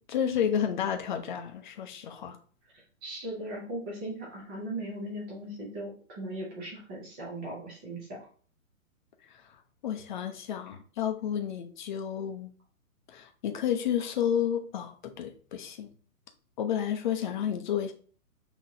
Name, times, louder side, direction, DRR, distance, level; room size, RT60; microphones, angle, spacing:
voice 1, 0.0-2.4 9.3-12.5 13.1-15.9 16.6-17.9, left 9 dB, 35° left, 0.6 m, -31 dB
voice 2, 2.7-8.3, right 1 dB, 10° right, 0.5 m, -38 dB
5.8 x 3.0 x 2.7 m
hypercardioid pair, 145°, 44 cm